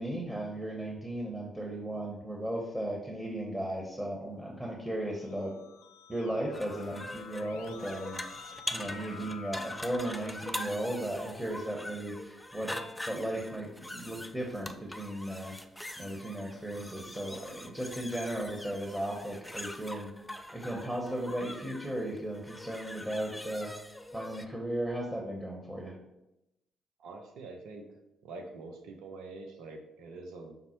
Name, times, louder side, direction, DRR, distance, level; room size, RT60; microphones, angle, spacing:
voice 1, 0.0-5.5 6.1-8.2 8.7-12.8 13.1-15.5 16.0-20.1 20.5-23.7 24.1-25.9, right 1 dB, 10° right, 0 dB, 1.0 m, -36 dB
Keyboard (musical), 4.9-11.5, left 6 dB, 80° left, 0.3 m, -50 dB
sound 1, 6.5-24.5, left 1 dB, 10° left, 0.4 m, -43 dB
voice 2, 27.0-28.0 28.2-30.6, right 3 dB, 75° right, 3 dB, 0.5 m, -45 dB
5.3 x 2.0 x 4.4 m, 0.89 s
hypercardioid pair, 50°, 0 cm